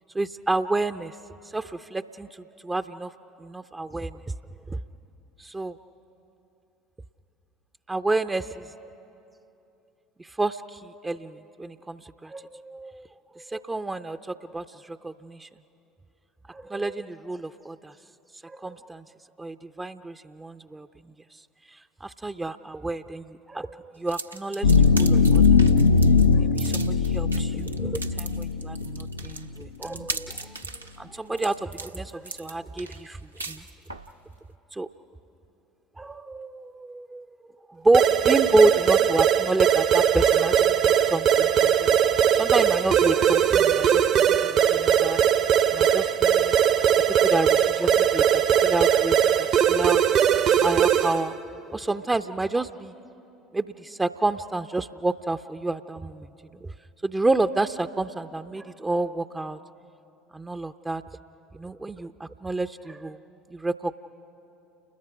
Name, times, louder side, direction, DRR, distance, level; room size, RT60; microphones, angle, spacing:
voice 1, 0.1-1.2 1.4-3.1 3.4-4.2 4.7-4.8 5.4-5.8 7.9-8.7 10.2-13.1 13.3-15.5 16.5-18.0 18.3-19.1 19.4-21.4 21.7-25.4 26.3-30.6 31.0-33.6 34.7-34.9 36.0-45.3 45.7-46.9 47.2-50.0 50.6-52.9 53.5-56.7 57.0-59.6 60.3-61.0 61.5-63.2 63.5-64.0, right 2 dB, 15° right, 9 dB, 0.5 m, -29 dB
sound 1, 24.1-34.1, right 3 dB, 90° right, 0.6 m, -38 dB
sound 2, 24.6-29.4, left 4 dB, 85° left, 0.5 m, -20 dB
sound 3, 37.9-51.3, right 9 dB, 50° right, 0.9 m, -20 dB
29.5 x 21.0 x 5.9 m, 2.9 s
figure-of-eight pair, 65°, 0 cm